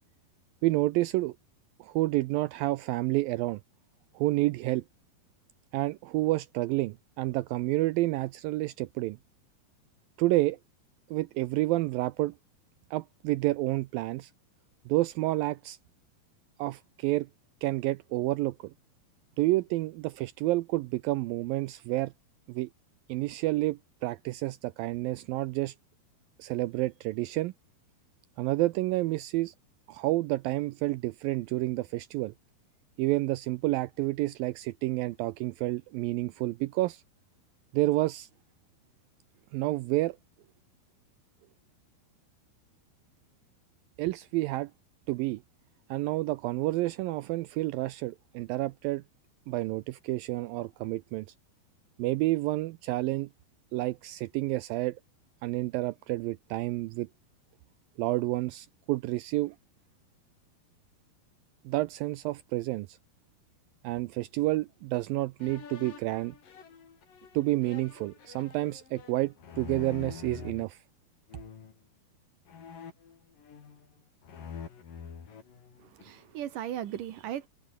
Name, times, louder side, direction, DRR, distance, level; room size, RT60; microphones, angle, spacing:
voice 1, 0.6-1.3 1.8-3.6 4.2-4.8 5.7-9.2 10.2-10.6 11.1-12.3 12.9-14.3 14.9-15.8 16.6-17.3 17.6-18.7 19.4-22.1 22.5-22.7 23.1-25.7 26.4-27.5 28.4-29.5 29.9-32.3 33.0-37.0 37.7-38.3 39.5-40.2 44.0-44.7 45.1-45.4 45.9-49.0 49.5-51.3 52.0-53.3 53.7-55.0 55.4-57.1 58.0-59.6 61.7-63.0 63.8-66.3 67.3-70.8, right 18 dB, 85° right, 2.1 m, -29 dB
sound 1, 65.4-70.7 71.3-71.8 72.5-73.9 74.2-76.2, left 6 dB, 55° left, 5.1 m, -46 dB
voice 2, 75.8-77.5, right 11 dB, 65° right, 2.6 m, -37 dB
omnidirectional pair, 4.7 m